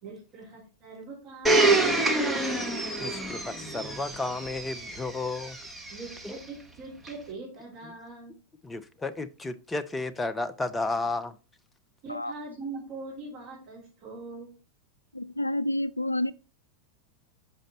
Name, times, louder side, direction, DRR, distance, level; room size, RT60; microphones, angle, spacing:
voice 1, 0.0-2.7 5.9-8.3 12.0-14.5, right 2 dB, 40° right, 3.1 m, -41 dB
Domestic sounds home sounds, 1.5-6.3 7.1-7.2, right 2 dB, 5° right, 1.1 m, -27 dB
voice 2, 3.0-5.6 6.2-6.4 8.6-11.4, left 3 dB, 10° left, 0.5 m, -33 dB
voice 3, 15.1-16.3, left 1 dB, 85° left, 0.3 m, -29 dB
6.5 x 5.1 x 4.1 m
figure-of-eight pair, 90°, 0 cm